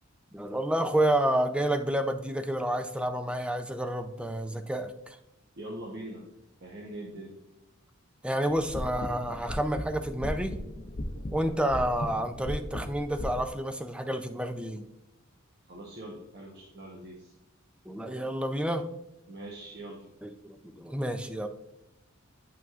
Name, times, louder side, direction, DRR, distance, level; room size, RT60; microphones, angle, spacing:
voice 1, 0.3-5.2 8.2-10.6 11.3-14.8 17.9-18.9 20.2-21.5, right 1 dB, 5° right, 7 dB, 0.4 m, -29 dB
voice 2, 5.6-6.3 6.6-7.3 15.7-17.3 19.3-20.1, right 1 dB, 55° right, -3 dB, 1.0 m, -42 dB
sound 1, 8.4-13.5, left 1 dB, 40° left, 0.6 m, -37 dB
9.1 x 5.8 x 2.4 m, 0.88 s
head